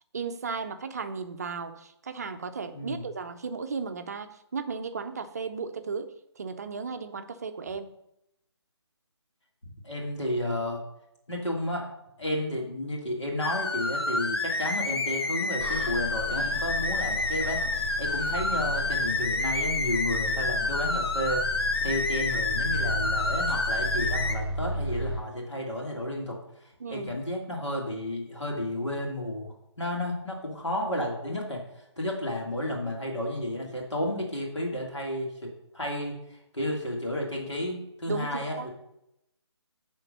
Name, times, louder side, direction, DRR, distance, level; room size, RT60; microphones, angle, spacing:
voice 1, 0.1-7.9 26.8-27.1 38.1-38.7, right 5 dB, 35° right, 9 dB, 0.6 m, -35 dB
voice 2, 2.7-3.1 9.8-10.8 11.3-11.9 12.2-17.6 18.0-21.4 21.8-38.7, left 1 dB, 75° left, -1 dB, 2.6 m, -32 dB
sound 1, 13.4-24.4, left 3 dB, 55° left, 0.9 m, -29 dB
Bus, 15.6-25.2, left 1 dB, ahead, 1.7 m, -35 dB
9.7 x 3.8 x 5.4 m, 0.82 s
figure-of-eight pair, 150°, 15 cm